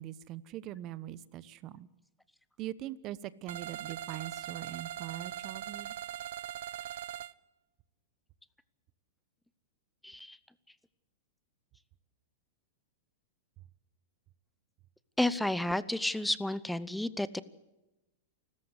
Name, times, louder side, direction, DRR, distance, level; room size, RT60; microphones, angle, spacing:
voice 1, 0.0-1.9 2.6-6.0, right 13 dB, 35° right, 17 dB, 1.1 m, -42 dB
sound 1, 3.5-7.3, right 12 dB, 70° right, 0.8 m, -41 dB
voice 2, 10.0-10.4 15.2-17.4, left 1 dB, 5° left, 16 dB, 0.8 m, -31 dB
29.0 x 14.0 x 8.1 m, 1.0 s
hypercardioid pair, 140°, 0 cm